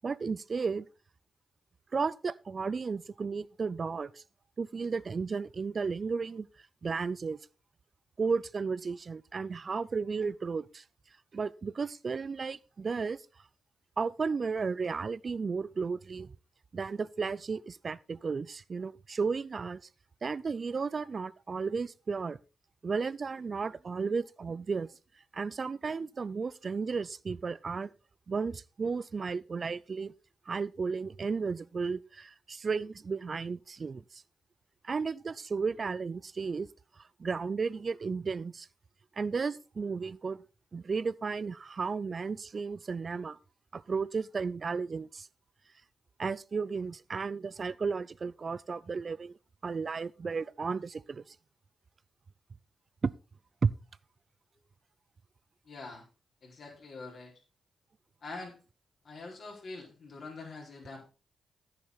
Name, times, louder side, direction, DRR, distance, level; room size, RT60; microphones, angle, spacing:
voice 1, 0.0-0.9 1.9-4.2 4.6-6.5 6.8-7.4 8.2-10.8 11.3-13.2 14.0-16.3 16.7-19.8 20.2-22.4 22.8-24.9 25.3-27.9 28.3-30.1 30.5-34.2 34.8-36.7 37.0-38.7 39.2-40.4 40.7-43.4 43.7-45.3 46.2-49.3 49.6-51.2 53.0-53.1 53.6-53.7, right 5 dB, 50° right, 0.4 m, -33 dB
voice 2, 55.6-56.0 56.4-57.3 58.2-58.6 59.0-61.1, left 3 dB, 60° left, 4.6 m, -44 dB
10.0 x 8.9 x 4.0 m
hypercardioid pair, 45°, 0 cm